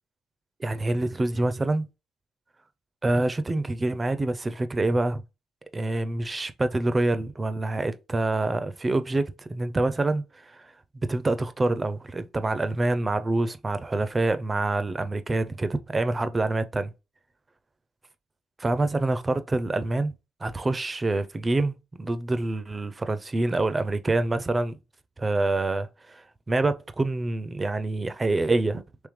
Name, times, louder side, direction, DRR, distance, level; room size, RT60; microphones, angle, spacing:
voice 1, 0.6-1.9 3.0-5.2 5.7-10.7 11.0-16.9 18.6-20.1 20.4-24.8 25.2-29.1, right 2 dB, 25° right, 0.4 m, -26 dB
3.6 x 3.1 x 3.0 m
cardioid pair, 75°, 0 cm